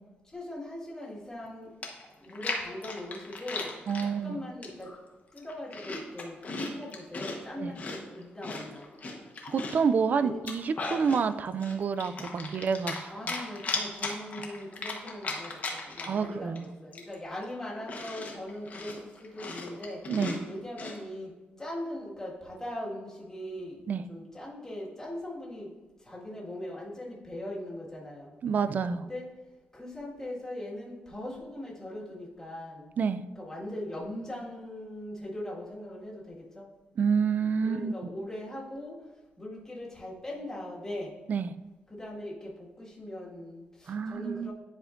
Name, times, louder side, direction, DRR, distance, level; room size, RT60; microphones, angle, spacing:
voice 1, 0.3-1.8 2.2-3.7 4.0-4.9 5.3-8.9 10.2-10.4 13.1-20.0 20.5-21.3 21.6-25.7 26.0-28.3 29.0-29.3 29.7-32.9 33.3-36.7 37.6-39.0 39.4-41.1 41.9-44.5, left 1 dB, 15° left, -5 dB, 1.7 m, -40 dB
Chewing mastication, 1.4-1.5 1.8-4.1 4.6-5.0 5.3-7.4 7.7-9.9 10.3-11.2 11.6-13.0 13.3-16.3 16.5-16.6 16.9-21.0, left 3 dB, 45° left, 1.0 m, -37 dB
voice 2, 3.9-4.4 7.6-7.7 9.5-13.1 16.1-16.7 20.1-20.4 23.9-24.0 28.4-29.1 33.0-33.2 37.0-37.9 41.3-41.5 43.9-44.5, right 6 dB, 45° right, 12 dB, 0.3 m, -28 dB
10.5 x 4.3 x 2.5 m, 1.2 s
cardioid pair, 115°, 4 cm